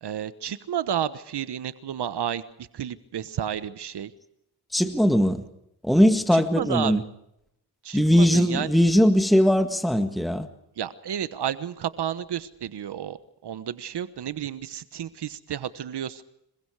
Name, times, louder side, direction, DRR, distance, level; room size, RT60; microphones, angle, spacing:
voice 1, 0.0-4.1 6.3-7.0 7.8-8.7 10.8-16.2, right 9 dB, 75° right, 13 dB, 1.2 m, -31 dB
voice 2, 4.7-5.4 5.8-7.0 7.9-10.5, equal, ahead, 8 dB, 1.7 m, -20 dB
27.5 x 22.5 x 4.9 m, 0.80 s
cardioid pair, 95°, 41 cm